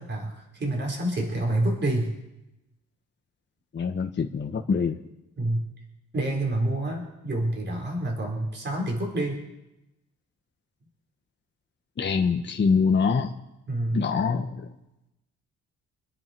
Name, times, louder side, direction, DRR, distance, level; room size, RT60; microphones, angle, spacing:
voice 1, 0.0-2.1 5.4-5.7 6.1-9.4 13.7-14.1, right 1 dB, 35° right, 0 dB, 4.8 m, -28 dB
voice 2, 3.7-5.0 12.0-13.3 13.9-14.7, left 5 dB, 35° left, 3 dB, 1.2 m, -24 dB
27.0 x 9.8 x 4.6 m, 0.93 s
cardioid pair, 90°, 30 cm